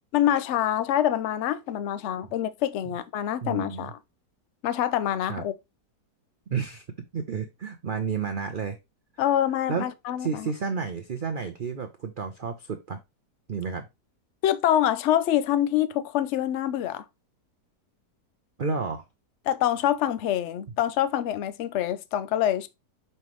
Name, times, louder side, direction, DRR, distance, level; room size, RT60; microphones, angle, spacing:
voice 1, 0.1-4.0 4.6-5.5 9.2-10.5 14.4-17.0 19.5-22.7, left 11 dB, 65° left, 0.7 m, -25 dB
voice 2, 3.4-3.9 5.3-5.4 6.5-6.8 7.1-8.8 9.7-9.9 10.2-13.0 13.5-13.9 18.6-19.0, right 5 dB, 80° right, 0.4 m, -31 dB
5.5 x 5.4 x 3.1 m
omnidirectional pair, 1.8 m